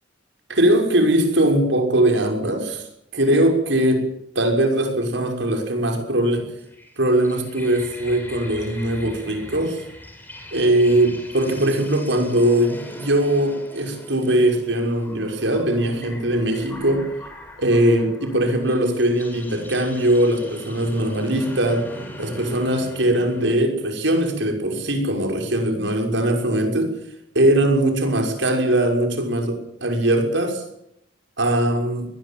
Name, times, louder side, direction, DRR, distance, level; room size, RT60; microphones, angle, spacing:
voice 1, 0.5-2.8 3.1-4.0 4.3-6.5 7.0-9.8 10.5-17.1 17.6-21.9 22.2-26.9 27.3-30.6 31.4-32.1, right 1 dB, 80° right, 3 dB, 6.1 m, -20 dB
sound 1, 6.6-23.5, left 1 dB, 10° left, 5.1 m, -41 dB
21.5 x 19.5 x 8.8 m, 0.76 s
head